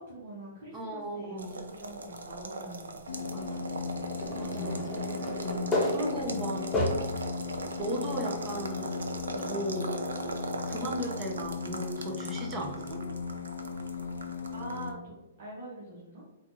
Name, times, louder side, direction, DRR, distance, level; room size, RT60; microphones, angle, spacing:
voice 1, 0.0-4.1 5.8-6.5 14.5-15.1 15.4-16.3, right 1 dB, 55° right, -7 dB, 1.2 m, -45 dB
voice 2, 0.7-1.6 3.3-3.7 4.3-4.9 5.9-6.7 7.8-8.9 9.3-9.9 10.6-13.0, equal, 20° right, -1 dB, 0.8 m, -36 dB
sound 1, 1.4-14.9, right 3 dB, 85° right, 0.5 m, -40 dB
sound 2, 3.1-14.9, left 5 dB, 85° left, 0.4 m, -37 dB
sound 3, 4.2-7.3 7.9-8.0 9.4-9.5, left 1 dB, 10° left, 1.0 m, -32 dB
4.2 x 2.5 x 2.8 m, 0.98 s
hypercardioid pair, 130°, 0 cm